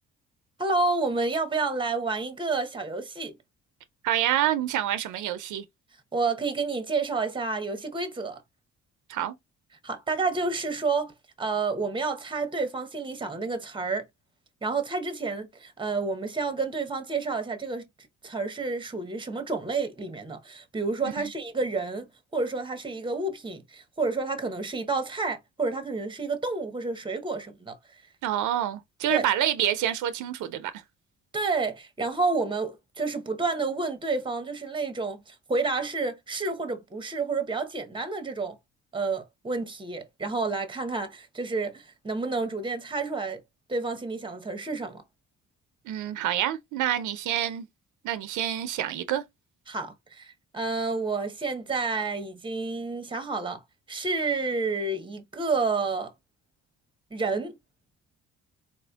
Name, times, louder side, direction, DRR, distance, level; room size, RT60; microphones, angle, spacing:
voice 1, 0.6-3.3 6.1-8.4 9.8-11.1 11.4-14.0 14.6-17.9 18.2-22.1 22.3-27.8 29.1-29.3 31.3-38.5 38.9-43.4 43.7-45.0 49.7-53.6 53.9-56.1 57.1-57.5, right 3 dB, 15° right, 0.8 m, -29 dB
voice 2, 4.0-5.6 9.1-9.3 21.2-21.3 28.2-30.7 45.9-47.7 48.0-49.2, right 11 dB, 75° right, 0.5 m, -27 dB
4.0 x 2.5 x 2.3 m
cardioid pair, 90°, 30 cm